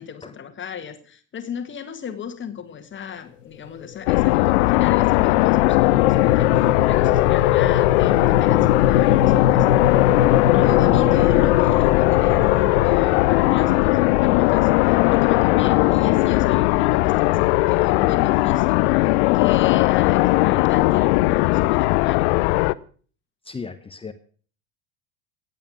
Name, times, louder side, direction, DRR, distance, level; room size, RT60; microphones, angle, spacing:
voice 1, 0.0-9.7 10.5-22.3, left 8 dB, 30° left, 9 dB, 1.8 m, -35 dB
sound 1, 3.8-16.0, left 10 dB, 80° left, 1.3 m, -23 dB
sound 2, 4.1-22.7, left 20 dB, 60° left, 0.7 m, -18 dB
voice 2, 23.4-24.1, left 5 dB, 15° left, 9 dB, 1.2 m, -35 dB
17.5 x 9.0 x 6.2 m, 0.43 s
figure-of-eight pair, 75°, 37 cm